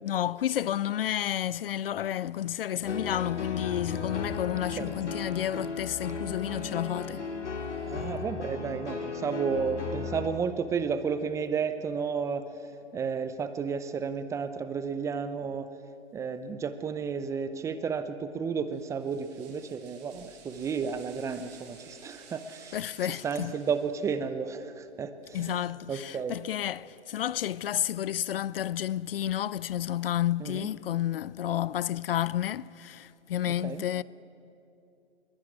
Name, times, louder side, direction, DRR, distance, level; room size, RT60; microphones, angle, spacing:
voice 1, 0.0-7.3 22.7-23.5 25.3-34.0, left 11 dB, 55° left, 0.6 m, -31 dB
sound 1, 2.8-10.3, left 5 dB, 90° left, 3.3 m, -35 dB
voice 2, 7.9-12.4 12.9-15.7 16.1-22.8 23.1-26.4 30.4-30.7 33.5-33.8, right 6 dB, 10° right, 0.5 m, -32 dB
sound 2, 18.7-24.3, right 5 dB, 55° right, 7.9 m, -54 dB
21.5 x 20.5 x 9.8 m
hypercardioid pair, 130°, 34 cm